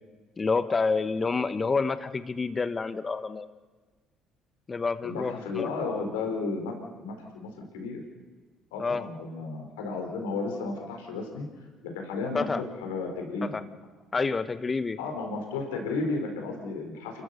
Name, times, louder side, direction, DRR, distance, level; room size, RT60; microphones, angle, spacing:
voice 1, 0.4-3.5 4.7-5.7 8.8-9.0 12.3-12.6 13.4-13.6 14.1-15.0, left 4 dB, 30° left, 11 dB, 1.2 m, -28 dB
voice 2, 5.0-8.0 8.7-11.5 11.8-12.5 12.8-13.5 15.0-17.2, left 3 dB, 85° left, 3 dB, 4.4 m, -33 dB
29.0 x 14.5 x 6.9 m, 1.4 s
hypercardioid pair, 60°, 0 cm